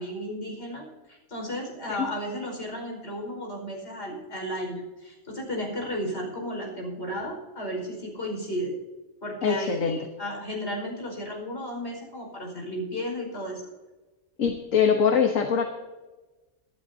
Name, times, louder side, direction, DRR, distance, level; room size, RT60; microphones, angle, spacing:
voice 1, 0.0-8.8 9.2-13.6, equal, 45° left, 0 dB, 5.4 m, -34 dB
voice 2, 9.4-10.0 14.4-15.6, left 6 dB, 65° left, 4 dB, 1.5 m, -23 dB
24.0 x 12.0 x 2.8 m, 1.2 s
omnidirectional pair, 1.5 m